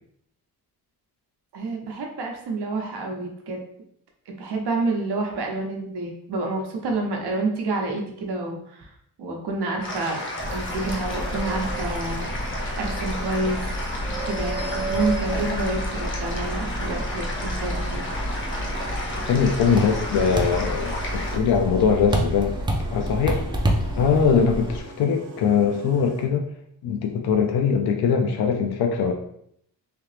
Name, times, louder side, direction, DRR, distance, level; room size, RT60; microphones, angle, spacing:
voice 1, 1.5-3.6 4.3-8.9 9.2-10.2 10.5-12.3 12.8-13.8 14.1-18.1, right 2 dB, 85° right, 1 dB, 0.8 m, -28 dB
sound 1, 9.8-21.4, left 1 dB, 30° left, 0.7 m, -33 dB
sound 2, 10.4-24.8, right 1 dB, 15° right, 0.3 m, -29 dB
sound 3, 17.7-26.4, right 1 dB, 50° right, 0.8 m, -43 dB
voice 2, 19.3-22.5 22.9-23.4 24.0-26.4 26.8-29.1, left 6 dB, 70° left, 3 dB, 0.5 m, -21 dB
3.3 x 2.8 x 3.2 m, 0.71 s
wide cardioid pair, 170°, 39 cm